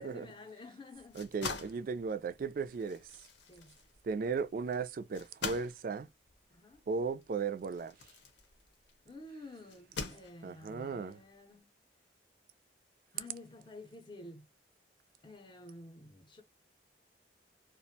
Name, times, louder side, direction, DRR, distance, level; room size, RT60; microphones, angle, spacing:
voice 1, 0.0-1.2 3.5-3.8 6.5-6.8 9.0-11.7 13.1-14.5 15.2-16.4, left 2 dB, 25° left, 0.6 m, -51 dB
sound 1, 0.9-9.0 9.7-10.7, left 4 dB, 80° left, 0.7 m, -45 dB
voice 2, 1.1-3.1 4.0-6.1 6.9-7.9 10.4-11.2, right 5 dB, 50° right, 0.3 m, -36 dB
2.4 x 2.1 x 2.6 m
head